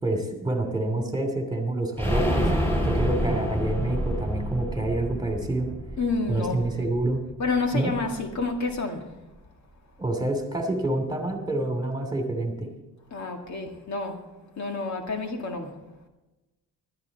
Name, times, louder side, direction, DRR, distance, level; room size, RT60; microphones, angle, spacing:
voice 1, 0.0-2.5 2.8-5.7 6.3-7.2 7.7-8.0 10.0-12.7, right 2 dB, 10° right, 2.7 m, -27 dB
sound 1, 2.0-7.6 7.9-8.0 8.3-8.4, equal, 5° left, 5.1 m, -28 dB
voice 2, 6.0-6.7 7.4-9.1 13.1-14.2 14.6-15.7, left 3 dB, 50° left, 2.0 m, -29 dB
16.0 x 12.5 x 4.1 m
cardioid pair, 105°, 36 cm